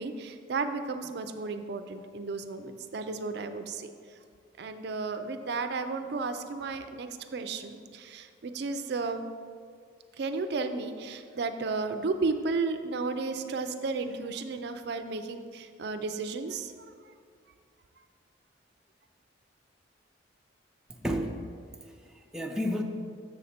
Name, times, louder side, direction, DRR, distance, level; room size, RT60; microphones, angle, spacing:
voice 1, 0.0-3.9 4.6-9.3 10.2-16.7, right 4 dB, 60° right, 8 dB, 0.4 m, -33 dB
voice 2, 20.9-21.4 21.8-22.8, equal, 5° right, 1 dB, 0.4 m, -32 dB
7.1 x 6.4 x 4.2 m, 2.1 s
head